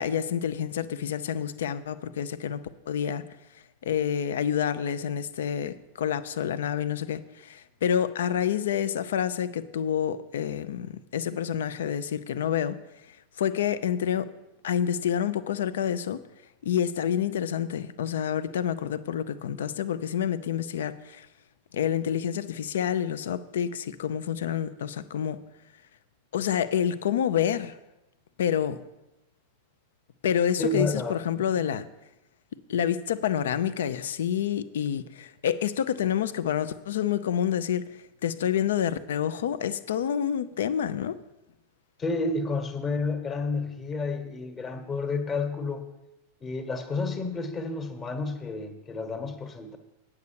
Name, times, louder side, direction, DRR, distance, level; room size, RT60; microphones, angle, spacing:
voice 1, 0.0-3.3 3.8-12.8 13.4-14.3 14.6-16.2 16.6-21.3 21.7-25.4 26.3-27.7 28.4-28.8 30.2-31.9 32.7-37.8 38.2-41.2, left 9 dB, 60° left, 0.5 m, -28 dB
voice 2, 30.6-31.2 42.0-45.8 46.4-49.8, left 3 dB, 20° left, 1.3 m, -30 dB
9.3 x 7.1 x 6.9 m
figure-of-eight pair, 90°, 0 cm